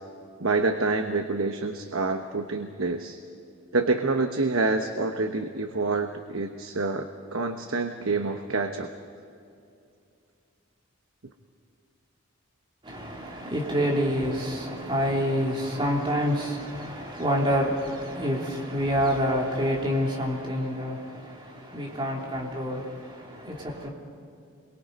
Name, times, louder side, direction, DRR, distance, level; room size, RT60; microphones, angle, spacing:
voice 1, 0.4-3.2 3.7-8.9, right 3 dB, 75° right, 1.1 m, -27 dB
voice 2, 12.8-23.9, equal, 25° right, 3.2 m, -27 dB
28.5 x 23.0 x 5.4 m
head